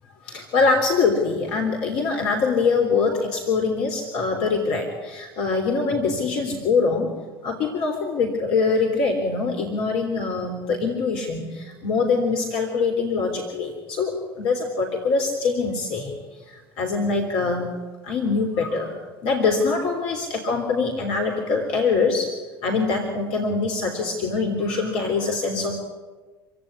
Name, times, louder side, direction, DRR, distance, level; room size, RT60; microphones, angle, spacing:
voice 1, 0.2-7.1 7.4-16.2 16.5-17.7 18.0-18.9 19.2-22.3 22.6-25.7, left 4 dB, 55° left, 3 dB, 3.6 m, -23 dB
26.0 x 17.0 x 9.8 m, 1.3 s
figure-of-eight pair, 70°, 12 cm